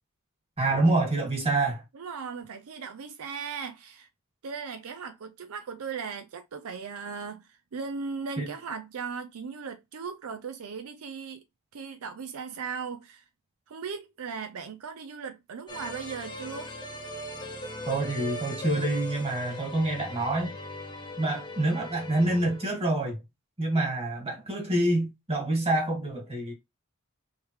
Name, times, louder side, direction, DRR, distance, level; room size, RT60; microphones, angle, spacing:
voice 1, 0.6-1.8 8.4-8.5 17.9-20.5 21.2-23.2 23.6-26.5, right 2 dB, 30° right, 1.8 m, -27 dB
voice 2, 1.9-4.1 4.4-11.4 11.7-13.2 13.7-16.7, right 5 dB, 80° right, 0.5 m, -37 dB
sound 1, 15.7-22.9, equal, 20° left, 1.0 m, -39 dB
4.8 x 3.6 x 3.1 m
head